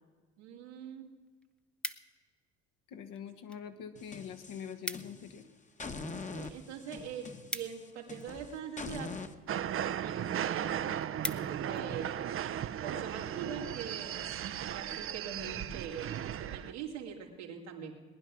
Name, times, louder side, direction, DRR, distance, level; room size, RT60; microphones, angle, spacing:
voice 1, 0.4-1.1 6.3-9.1 10.0-12.1 12.8-14.2 14.7-17.9, right 7 dB, 90° right, 0 dB, 2.3 m, -43 dB
sound 1, 0.6-0.7 1.1-2.4 3.1-3.7 4.0-4.1 4.3-4.4 4.6-5.3 5.6-8.5 9.2-9.5 10.0-10.1 10.5-10.6 10.8-11.8 12.3-12.5, left 1 dB, 5° left, 0.7 m, -42 dB
voice 2, 2.9-5.5, left 8 dB, 65° left, 7 dB, 1.4 m, -44 dB
sound 2, 4.0-5.4 5.8-9.3, left 3 dB, 20° left, 1.2 m, -43 dB
sound 3, 9.5-16.7, right 10 dB, 40° right, 0.6 m, -36 dB
19.5 x 10.5 x 6.0 m, 1.5 s
hypercardioid pair, 65°, 34 cm